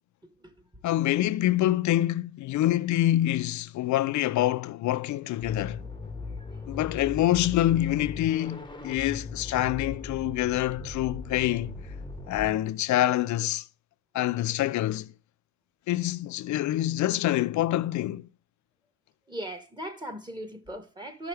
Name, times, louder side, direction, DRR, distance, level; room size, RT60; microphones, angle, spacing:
voice 1, 0.8-5.8 6.7-11.8 12.3-13.7 14.1-15.1 15.9-18.2, left 14 dB, 70° left, 0.6 m, -26 dB
sound 1, 5.4-12.5, left 3 dB, 15° left, 1.3 m, -39 dB
voice 2, 19.3-21.3, right 1 dB, 15° right, 2.0 m, -38 dB
13.5 x 5.7 x 3.4 m
cardioid pair, 90°, 30 cm